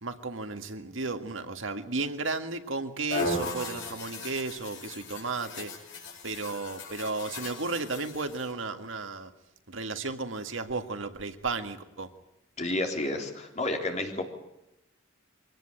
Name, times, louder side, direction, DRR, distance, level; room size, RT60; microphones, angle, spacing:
voice 1, 0.0-5.7 6.2-9.3 9.7-12.1, right 3 dB, 70° right, 8 dB, 1.9 m, -34 dB
sound 1, 3.1-8.5, left 2 dB, 65° left, 5.5 m, -37 dB
voice 2, 12.6-14.2, left 2 dB, 35° left, 3 dB, 3.7 m, -30 dB
24.0 x 18.0 x 8.9 m, 0.87 s
head